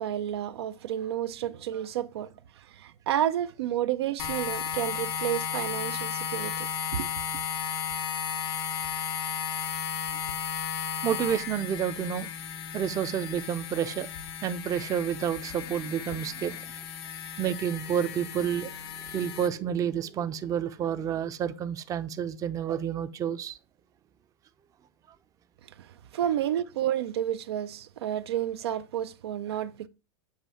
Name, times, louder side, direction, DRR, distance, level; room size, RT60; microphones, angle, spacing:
voice 1, 0.0-7.1 25.8-29.9, right 11 dB, 90° right, 0.5 m, -31 dB
sound 1, 4.2-19.5, left 8 dB, 80° left, 1.0 m, -34 dB
voice 2, 11.0-12.3 12.7-14.1 14.4-16.6 17.4-18.7 19.1-23.6, right 9 dB, 25° right, 0.5 m, -29 dB
7.2 x 2.7 x 5.5 m
supercardioid pair, 130°, 13 cm